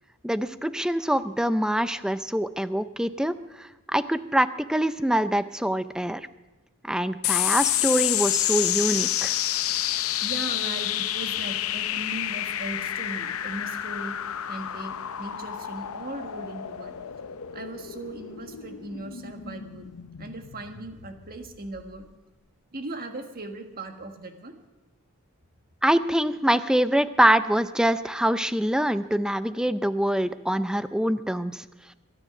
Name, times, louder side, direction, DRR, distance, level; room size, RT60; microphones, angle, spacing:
voice 1, 0.2-6.3 6.8-9.3 25.8-31.6, right 1 dB, 5° right, 12 dB, 0.5 m, -24 dB
sound 1, 7.2-22.0, left 12 dB, 80° left, 0.6 m, -29 dB
voice 2, 10.2-14.2 14.5-17.0 17.5-19.9 20.2-22.1 22.7-24.6, right 2 dB, 45° right, 5 dB, 1.6 m, -38 dB
22.5 x 10.0 x 6.0 m, 1.1 s
head